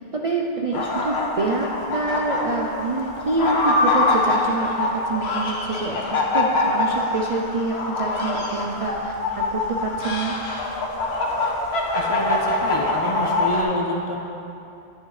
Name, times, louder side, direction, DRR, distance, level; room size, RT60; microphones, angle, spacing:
voice 1, 0.1-10.3, right 3 dB, 45° right, -1 dB, 0.4 m, -27 dB
sound 1, 0.7-13.6, left 2 dB, 75° left, 1.2 m, -24 dB
voice 2, 11.9-14.2, left 1 dB, 35° left, -2 dB, 0.7 m, -28 dB
10.5 x 9.0 x 3.2 m, 2.8 s
omnidirectional pair, 1.1 m